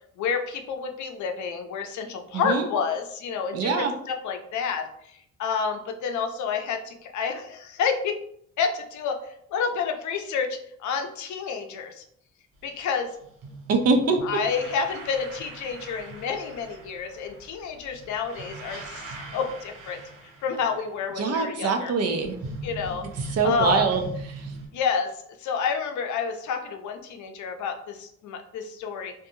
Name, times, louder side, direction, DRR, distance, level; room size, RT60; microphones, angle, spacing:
voice 1, 0.2-8.2 8.6-12.0 12.6-13.1 14.2-20.0 20.4-21.9 22.6-23.9 24.7-25.1 25.4-29.1, left 6 dB, 70° left, 5 dB, 0.5 m, -29 dB
voice 2, 2.3-2.6 3.5-3.9 13.7-14.2 21.2-22.4 23.3-24.5, right 4 dB, 55° right, 6 dB, 0.5 m, -24 dB
sound 1, 12.5-12.8 13.1-21.4 21.8-24.7, right 2 dB, 75° right, 0.9 m, -40 dB
2.7 x 2.3 x 2.6 m, 0.68 s
cardioid pair, 90°, 30 cm